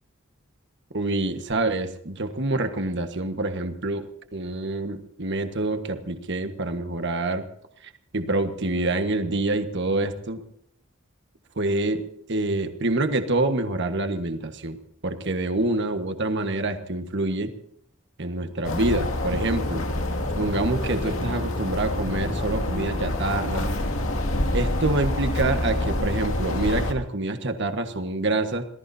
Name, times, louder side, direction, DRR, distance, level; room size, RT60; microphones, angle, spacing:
voice 1, 0.9-4.1 4.3-7.4 8.1-10.4 11.5-12.0 12.3-14.8 15.0-17.5 18.2-19.8 20.3-23.7 24.5-28.7, right 2 dB, 55° right, 7 dB, 1.5 m, -26 dB
sound 1, 18.6-26.9, left 1 dB, 70° left, 2.3 m, -27 dB
27.0 x 19.0 x 2.8 m, 0.70 s
head